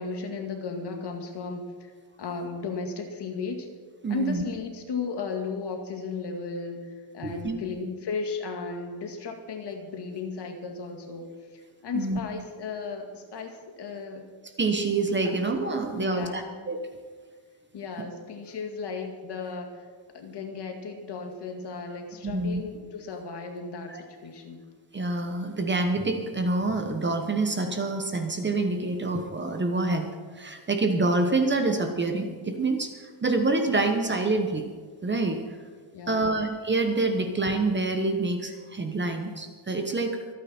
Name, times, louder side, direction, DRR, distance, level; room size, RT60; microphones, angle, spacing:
voice 1, 0.0-1.9 2.2-3.7 4.1-11.3 11.8-14.2 15.2-15.4 15.9-16.5 17.7-19.9 20.1-24.6 35.9-36.4, left 4 dB, 55° left, 4 dB, 2.0 m, -35 dB
voice 2, 4.0-4.4 7.4-7.6 11.9-12.2 14.6-16.8 22.2-22.6 23.9-24.0 24.9-30.1 30.3-32.9 33.2-34.6 35.0-35.4 36.1-40.2, right 2 dB, 25° right, 5 dB, 1.1 m, -26 dB
25.0 x 9.0 x 4.4 m, 1.5 s
wide cardioid pair, 165°, 49 cm